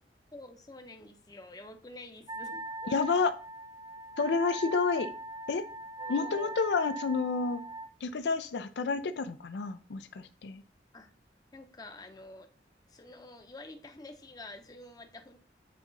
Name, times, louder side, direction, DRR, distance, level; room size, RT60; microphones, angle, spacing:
voice 1, 0.3-2.6 6.0-6.5 10.9-11.1 11.5-12.5 12.9-15.4, left 2 dB, 20° left, 6 dB, 0.7 m, -48 dB
Wind instrument woodwind instrument, 2.3-7.9, right 1 dB, 25° right, 0.6 m, -40 dB
voice 2, 2.9-3.3 4.2-5.1 5.5-5.6 6.1-7.6 8.0-10.6, left 4 dB, 75° left, 11 dB, 0.4 m, -30 dB
8.4 x 2.9 x 3.9 m, 0.39 s
head